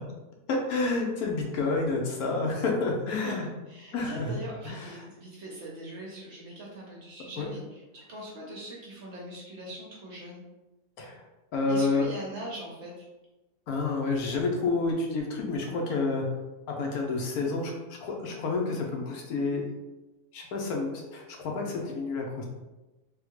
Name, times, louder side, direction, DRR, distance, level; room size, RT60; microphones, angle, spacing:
voice 1, 0.5-3.5 3.9-4.4 4.6-5.1 7.4-7.5 11.0-11.2 11.5-12.1 13.7-16.3 16.7-19.6 20.3-22.5, left 3 dB, 80° left, 0 dB, 1.1 m, -29 dB
voice 2, 3.2-7.6 7.9-10.4 11.7-13.0, right 1 dB, 60° right, -3 dB, 0.8 m, -41 dB
3.5 x 2.3 x 3.0 m, 1.1 s
omnidirectional pair, 1.6 m